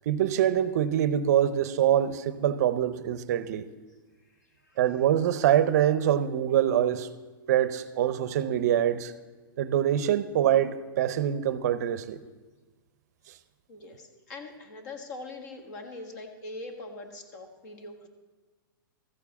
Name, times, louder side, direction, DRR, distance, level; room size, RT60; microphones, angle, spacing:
voice 1, 0.1-3.7 4.8-7.1 7.5-9.1 9.6-12.2, right 10 dB, 50° right, 0.5 m, -24 dB
voice 2, 13.7-18.1, left 2 dB, 50° left, 1.5 m, -42 dB
14.0 x 4.7 x 7.0 m
hypercardioid pair, 160°, 12 cm